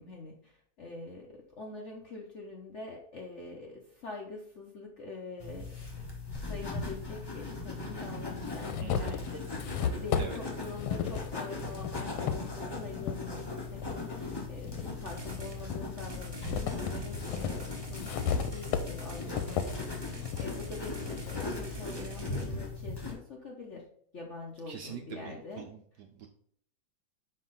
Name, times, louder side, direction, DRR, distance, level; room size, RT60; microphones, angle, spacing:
voice 1, 0.0-5.7 6.3-23.9 24.1-25.7, left 3 dB, 55° left, -1 dB, 0.8 m, -44 dB
sound 1, 5.4-23.1, left 3 dB, 15° left, 0.9 m, -39 dB
sound 2, 6.3-6.4 7.5-7.6 8.1-13.2 13.7-14.9 15.4-21.5, left 7 dB, 90° left, 1.5 m, -35 dB
voice 2, 8.8-9.2 10.2-10.4 24.7-26.3, right 8 dB, 75° right, 4 dB, 1.0 m, -44 dB
sound 3, 15.1-15.6 16.0-22.4, equal, 30° right, 0.4 m, -44 dB
5.6 x 4.5 x 3.9 m, 0.64 s
omnidirectional pair, 2.3 m